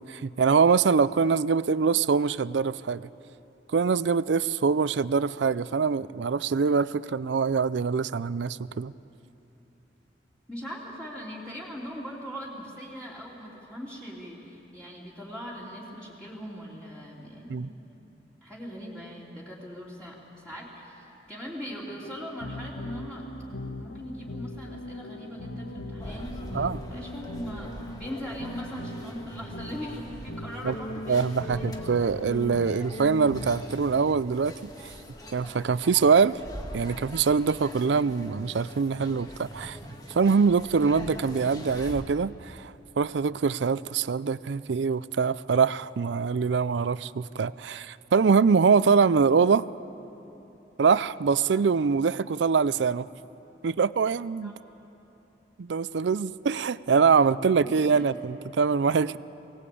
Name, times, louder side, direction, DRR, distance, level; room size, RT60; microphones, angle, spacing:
voice 1, 0.1-3.1 3.7-8.9 17.5-17.7 26.5-26.8 30.6-30.7 31.1-34.7 35.3-36.4 36.7-39.8 40.1-49.7 50.8-53.1 53.6-54.5 55.6-59.2, right 5 dB, 75° right, 18 dB, 0.5 m, -24 dB
voice 2, 10.5-17.7 18.4-20.2 20.4-23.3 23.8-31.7 54.4-54.6 57.6-58.1, equal, 5° left, -6 dB, 3.0 m, -40 dB
sound 1, 21.7-34.1, left 1 dB, 90° left, 1.5 m, -39 dB
sound 2, 26.0-42.0, equal, 20° left, 1.8 m, -43 dB
23.0 x 18.5 x 8.5 m, 3.0 s
head